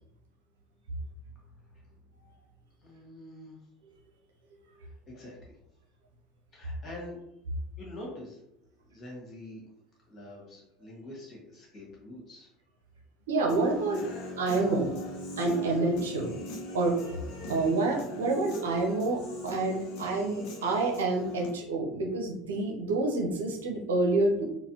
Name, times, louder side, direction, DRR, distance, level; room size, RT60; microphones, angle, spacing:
voice 1, 2.8-3.6 4.8-5.5 6.5-7.2 7.8-8.4 8.8-9.6 10.1-12.5, left 1 dB, 35° left, -3 dB, 1.5 m, -45 dB
voice 2, 13.3-14.0 14.4-15.1 15.4-16.4 16.7-17.0 17.4-24.4, right 2 dB, 75° right, 1 dB, 0.6 m, -28 dB
Human voice / Guitar, 13.5-21.5, left 1 dB, 55° left, 0.6 m, -40 dB
4.0 x 2.1 x 2.7 m, 0.82 s
figure-of-eight pair, 70°, 0 cm